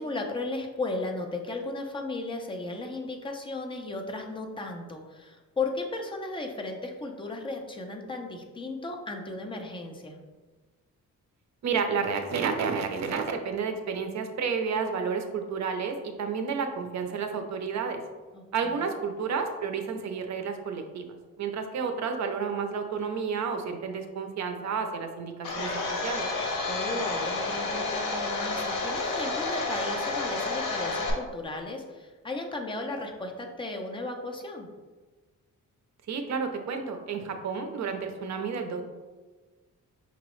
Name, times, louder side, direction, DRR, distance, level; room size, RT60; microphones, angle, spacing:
voice 1, 0.0-10.2 18.3-18.9 26.7-34.7, left 2 dB, 15° left, 2 dB, 0.5 m, -35 dB
voice 2, 11.6-18.0 18.5-21.1 21.4-26.3 36.1-38.8, right 5 dB, 60° right, 6 dB, 0.6 m, -31 dB
Domestic sounds home sounds, 25.4-31.1, left 3 dB, 70° left, 0.9 m, -30 dB
5.4 x 2.9 x 3.0 m, 1.3 s
wide cardioid pair, 155°, 32 cm